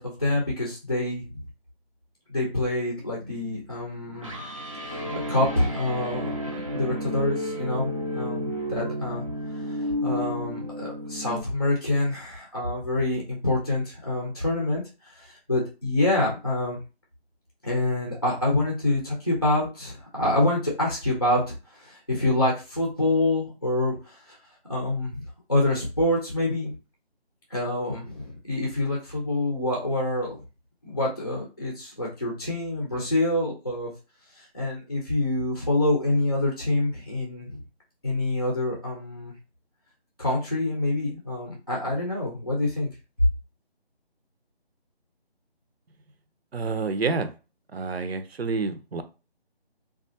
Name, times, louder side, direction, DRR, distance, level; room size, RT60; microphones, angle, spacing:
voice 1, 0.0-1.4 2.3-4.3 4.8-9.2 9.5-16.8 17.6-24.4 24.7-25.2 25.5-26.7 27.5-30.4 30.8-33.9 34.4-37.6 38.0-39.3 40.2-42.9, left 1 dB, 25° left, 0.6 m, -26 dB
sound 1, 3.2-11.4, equal, 30° right, 0.5 m, -32 dB
voice 2, 46.5-47.3 47.7-49.0, right 4 dB, 70° right, 0.7 m, -28 dB
3.6 x 2.3 x 2.7 m
figure-of-eight pair, 165°, 32 cm